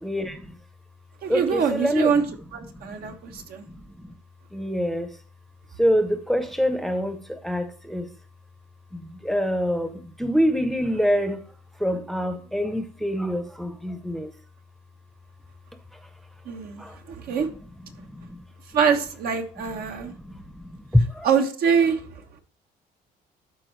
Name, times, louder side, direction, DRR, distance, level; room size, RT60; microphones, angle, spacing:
voice 1, 0.0-0.6 1.3-2.3 2.7-4.2 4.5-5.2 5.8-8.1 8.9-11.4 11.7-14.3 15.9-16.1 16.8-17.0 17.3-18.4 19.7-21.3, equal, ahead, 0.8 m, -26 dB
voice 2, 1.2-2.2 2.5-3.6 16.5-17.5 18.7-20.1 21.2-22.0, right 6 dB, 65° right, 1.2 m, -24 dB
12.0 x 4.4 x 3.2 m
cardioid pair, 110°, 17 cm